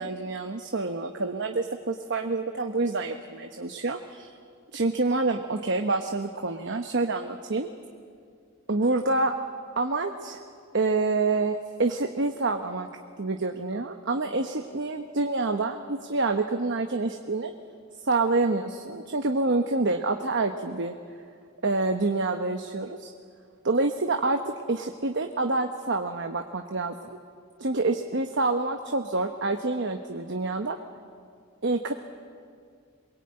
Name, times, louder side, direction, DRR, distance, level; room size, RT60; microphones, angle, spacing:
voice 1, 0.0-4.3 4.7-7.7 8.7-9.3 9.8-10.4 10.7-12.9 13.2-17.5 18.0-20.9 21.6-23.1 23.6-27.2 27.6-30.8 31.6-31.9, right 3 dB, 55° right, 5 dB, 1.0 m, -27 dB
23.0 x 22.0 x 8.8 m, 2.2 s
head